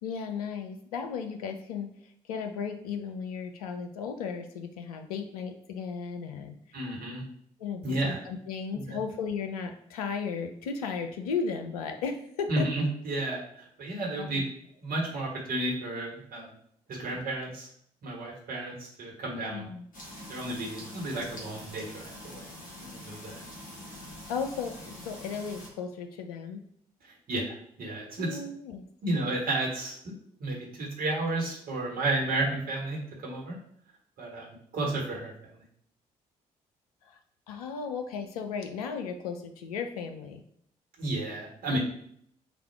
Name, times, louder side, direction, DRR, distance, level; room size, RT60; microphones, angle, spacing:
voice 1, 0.0-6.6 7.6-12.7 14.2-14.4 19.3-19.9 24.3-26.6 28.2-28.9 37.0-37.2 37.5-40.4, left 5 dB, 75° left, 6 dB, 0.4 m, -35 dB
voice 2, 6.7-7.2 7.8-8.2 8.7-9.0 12.5-14.4 14.8-16.5 16.9-17.7 18.0-19.7 20.3-22.5 22.8-23.4 27.3-28.4 29.0-30.0 30.4-33.6 34.2-34.5 34.7-35.6 41.0-41.8, right 2 dB, 50° right, -2 dB, 1.3 m, -32 dB
sound 1, 19.9-25.7, left 1 dB, 45° left, 1.3 m, -45 dB
3.4 x 2.4 x 4.4 m, 0.66 s
figure-of-eight pair, 45°, 19 cm